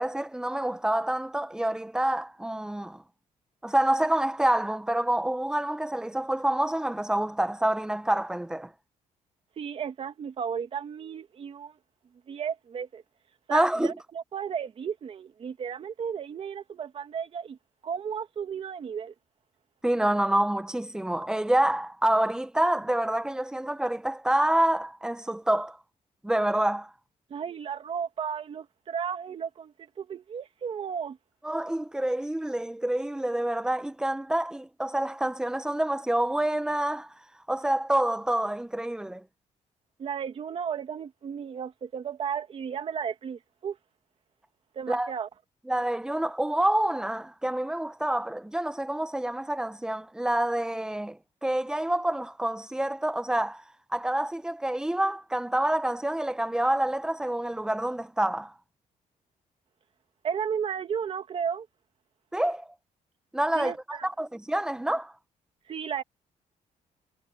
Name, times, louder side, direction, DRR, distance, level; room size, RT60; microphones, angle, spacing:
voice 1, 0.0-3.0 3.6-8.7 13.5-13.9 19.8-25.8 26.2-26.9 31.4-37.1 37.5-39.2 44.9-45.1 45.7-53.6 53.9-58.5 62.3-62.7 63.3-65.1, right 1 dB, 5° right, 1.0 m, -27 dB
voice 2, 9.6-11.8 12.3-13.0 13.5-17.6 17.8-19.1 27.3-31.2 40.0-43.8 44.8-45.3 60.2-61.7 63.5-64.1 65.7-66.0, right 7 dB, 45° right, 1.8 m, -34 dB
cardioid pair, 135°, 13 cm